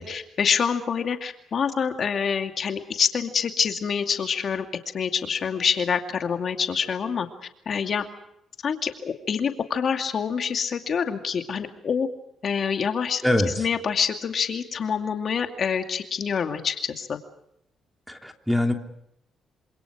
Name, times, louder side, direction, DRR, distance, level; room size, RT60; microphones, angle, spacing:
voice 1, 0.0-4.7 4.9-7.3 7.7-8.0 8.6-12.1 12.4-13.2 13.6-17.2, left 6 dB, 50° left, 6 dB, 2.4 m, -26 dB
voice 2, 13.2-13.7 18.1-18.7, left 1 dB, ahead, 4 dB, 3.1 m, -23 dB
27.5 x 26.5 x 5.0 m, 0.76 s
cardioid pair, 90°, 0 cm